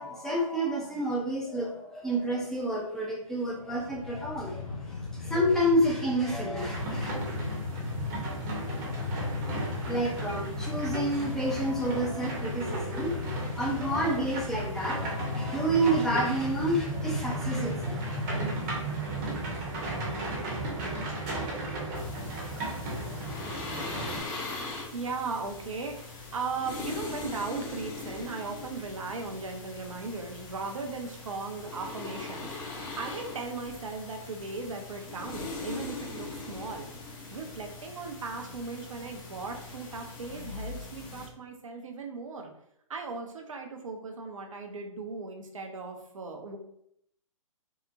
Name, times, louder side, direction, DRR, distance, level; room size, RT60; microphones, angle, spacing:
voice 1, 0.0-7.1 9.8-18.0, right 1 dB, ahead, -4 dB, 0.4 m, -29 dB
Train, 3.5-18.7, left 3 dB, 75° left, 0.6 m, -36 dB
sound 1, 6.6-24.2, right 2 dB, 30° right, 0.7 m, -35 dB
sound 2, 21.9-41.3, left 3 dB, 40° left, 0.7 m, -41 dB
voice 2, 24.9-36.9 37.3-42.5 42.9-46.6, right 4 dB, 70° right, 3 dB, 0.5 m, -37 dB
2.8 x 2.0 x 2.5 m, 0.72 s
figure-of-eight pair, 120°, 17 cm